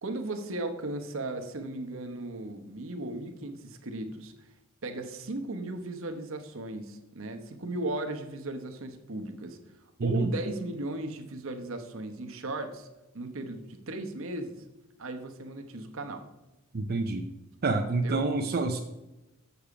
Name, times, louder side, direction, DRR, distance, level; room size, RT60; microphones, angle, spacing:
voice 1, 0.0-4.3 4.8-9.6 10.0-12.9 13.1-14.6 15.0-16.2 18.0-18.2, right 2 dB, 70° right, 6 dB, 1.0 m, -36 dB
voice 2, 10.0-10.3 16.7-17.3 17.6-18.8, right 3 dB, 50° right, 3 dB, 0.5 m, -27 dB
7.1 x 6.9 x 4.9 m, 1.0 s
head